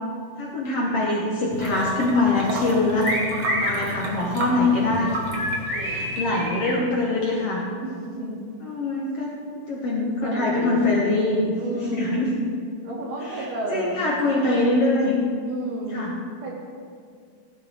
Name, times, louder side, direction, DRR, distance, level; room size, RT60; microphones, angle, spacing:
voice 1, 0.4-3.1 3.6-5.1 5.8-7.6 8.6-12.3 13.2-15.2 15.9-16.1, left 2 dB, 60° left, -3 dB, 1.6 m, -23 dB
sound 1, 1.5-6.5, right 1 dB, 60° right, 2.6 m, -33 dB
sound 2, 3.0-3.8 5.3-6.8, equal, 30° left, 3.3 m, -27 dB
voice 2, 3.6-4.0 5.7-6.2 7.8-8.4 10.2-10.9 11.6-12.3 12.8-14.0 15.5-16.1 16.4-16.5, right 1 dB, 90° right, -3 dB, 4.4 m, -32 dB
16.0 x 11.5 x 3.5 m, 2.2 s
omnidirectional pair, 4.3 m